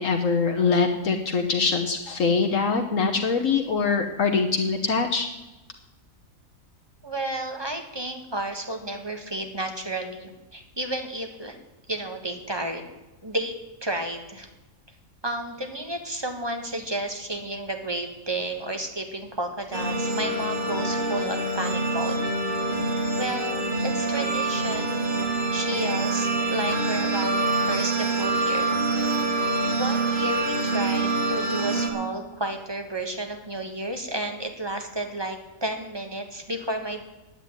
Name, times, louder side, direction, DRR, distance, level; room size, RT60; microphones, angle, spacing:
voice 1, 0.0-5.3, left 4 dB, 65° left, 3 dB, 1.4 m, -23 dB
voice 2, 7.0-11.6 11.9-12.8 13.2-13.5 13.8-14.5 15.2-22.2 23.1-25.1 25.5-27.3 27.6-28.7 29.7-37.0, right 1 dB, 20° right, 5 dB, 1.6 m, -32 dB
sound 1, 19.7-31.9, right 2 dB, 35° right, 2.4 m, -26 dB
9.6 x 8.9 x 9.7 m, 1.0 s
omnidirectional pair, 1.5 m